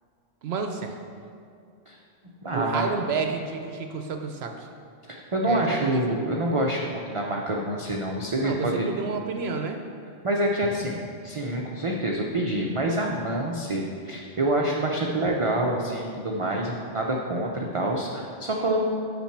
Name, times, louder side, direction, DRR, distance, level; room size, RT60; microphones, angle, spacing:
voice 1, 0.4-1.0 2.5-4.7 5.5-6.2 8.4-9.8, right 4 dB, 65° right, 5 dB, 0.8 m, -30 dB
voice 2, 2.4-2.9 5.1-8.9 10.2-11.0 11.2-18.9, right 1 dB, 35° right, -1 dB, 0.5 m, -27 dB
7.2 x 6.0 x 5.8 m, 2.3 s
omnidirectional pair, 1.2 m